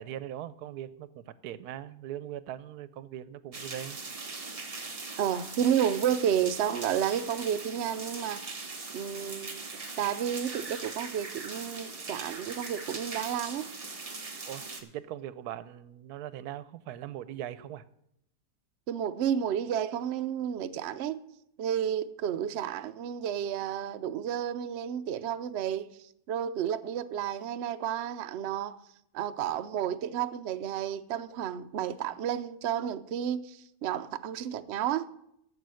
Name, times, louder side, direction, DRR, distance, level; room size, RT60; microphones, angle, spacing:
voice 1, 0.0-4.0 14.5-17.8, right 11 dB, 85° right, 1.1 m, -40 dB
sound 1, 3.5-14.8, right 3 dB, 25° right, 1.0 m, -40 dB
voice 2, 5.2-8.6 8.9-9.7 10.0-13.7 18.9-21.2 21.6-28.8 29.1-35.1, right 9 dB, 65° right, 0.7 m, -31 dB
11.0 x 6.9 x 6.3 m
omnidirectional pair, 1.6 m